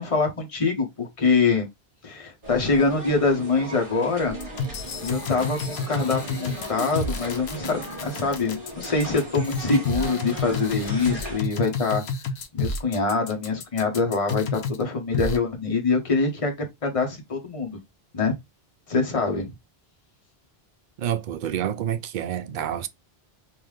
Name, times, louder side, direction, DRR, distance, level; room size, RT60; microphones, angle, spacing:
voice 1, 0.0-1.7 2.0-4.3 5.0-12.0 12.5-16.5 16.8-17.8 18.1-18.3 18.9-19.4, left 4 dB, 35° left, 1.2 m, -24 dB
sound 1, 2.4-11.4, equal, 35° right, 1.6 m, -37 dB
sound 2, 4.4-14.8 15.1-15.4, left 3 dB, 90° left, 1.0 m, -30 dB
voice 2, 21.0-22.9, right 10 dB, 60° right, 0.6 m, -28 dB
3.8 x 2.7 x 3.1 m
omnidirectional pair, 1.0 m